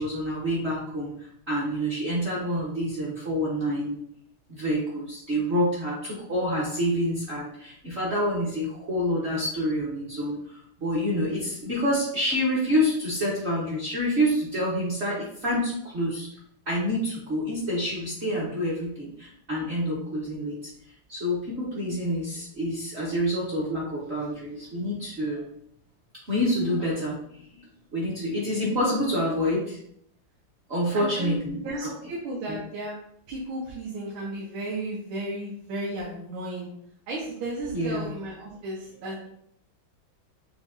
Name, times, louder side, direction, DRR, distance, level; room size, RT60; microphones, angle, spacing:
voice 1, 0.0-4.0 4.5-16.3 16.7-20.7 21.1-25.4 26.3-27.6 27.9-29.8 30.7-31.9 32.5-32.6 37.7-38.1, equal, 55° right, -6 dB, 0.8 m, -27 dB
voice 2, 30.9-32.9 33.3-36.7 37.1-39.3, right 1 dB, 80° right, -3 dB, 1.6 m, -34 dB
6.7 x 2.3 x 2.5 m, 0.70 s
omnidirectional pair, 2.2 m